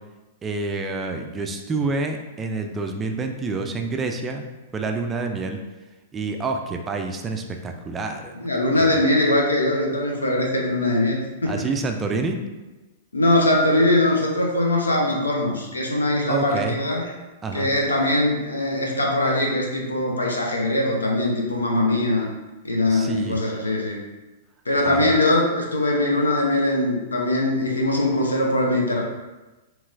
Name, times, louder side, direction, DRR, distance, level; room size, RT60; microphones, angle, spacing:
voice 1, 0.4-4.5 4.7-5.6 6.1-8.5 8.8-8.9 11.5-12.4 16.3-16.8 17.4-17.7 22.9-23.4 24.8-25.1, right 3 dB, 20° right, 4 dB, 0.3 m, -28 dB
voice 2, 8.4-11.7 13.1-17.1 17.5-22.3 22.6-24.0 24.7-29.0, left 1 dB, 80° left, 0 dB, 0.6 m, -21 dB
2.9 x 2.9 x 2.4 m, 1.1 s
figure-of-eight pair, 105°, 0 cm